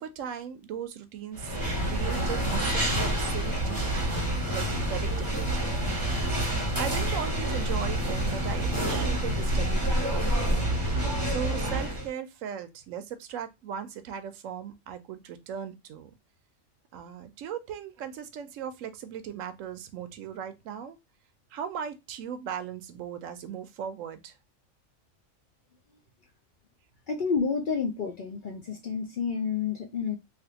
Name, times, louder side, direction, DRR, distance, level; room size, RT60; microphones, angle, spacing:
voice 1, 0.0-1.6 1.8-5.8 6.8-16.1 16.9-21.0 21.5-24.4, right 8 dB, 85° right, 1.0 m, -38 dB
sound 1, 1.3-12.1, right 1 dB, 20° right, 0.8 m, -28 dB
voice 2, 27.1-30.2, left 6 dB, 60° left, 0.5 m, -29 dB
3.3 x 2.5 x 2.7 m
omnidirectional pair, 1.3 m